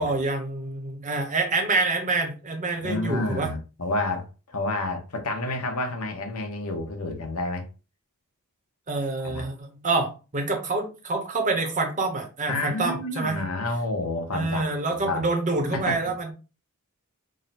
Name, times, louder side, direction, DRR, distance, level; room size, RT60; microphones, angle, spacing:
voice 1, 0.0-3.5 8.9-13.4 14.3-16.3, right 3 dB, 35° right, 0.9 m, -27 dB
voice 2, 2.8-7.7 9.2-9.4 12.5-15.3 15.7-16.0, left 2 dB, 75° left, 1.0 m, -29 dB
3.8 x 2.2 x 4.1 m
head